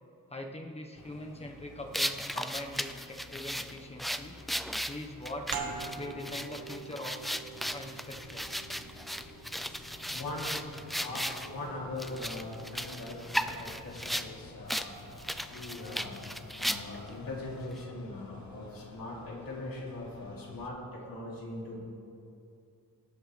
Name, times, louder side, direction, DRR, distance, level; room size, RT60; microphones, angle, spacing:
voice 1, 0.3-4.4 4.9-5.6 6.0-7.2 7.7-8.5 16.2-16.3 18.1-18.3 19.2-19.3, left 1 dB, 15° left, 2 dB, 1.1 m, -42 dB
sound 1, 0.9-20.7, left 3 dB, 50° left, 0.9 m, -50 dB
sound 2, 1.9-11.5 12.0-14.3 14.7-14.9 15.2-17.1, equal, ahead, 0.3 m, -36 dB
sound 3, 5.5-10.8, right 5 dB, 75° right, 1.2 m, -43 dB
voice 2, 10.0-10.6 11.0-14.9 15.5-16.2 16.6-21.8, left 2 dB, 70° left, -4 dB, 3.1 m, -41 dB
22.0 x 8.8 x 3.3 m, 2.6 s
wide cardioid pair, 140°, 35 cm